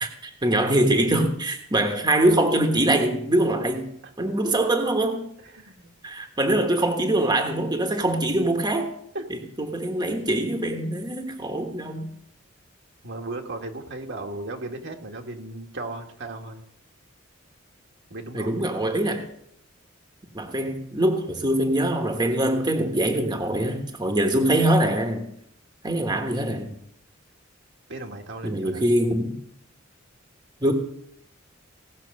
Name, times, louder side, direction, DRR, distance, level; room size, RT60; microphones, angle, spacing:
voice 1, 0.0-3.9 4.2-5.3 6.0-8.9 9.3-12.1 18.3-19.2 20.3-25.3 25.8-26.8 28.4-29.4 30.6-30.7, right 1 dB, 20° right, 4 dB, 1.3 m, -23 dB
voice 2, 5.4-5.9 6.5-6.7 9.2-9.3 13.0-16.6 18.1-18.7 27.9-28.8, right 2 dB, 60° right, 3 dB, 1.6 m, -36 dB
17.0 x 6.0 x 6.4 m, 0.72 s
head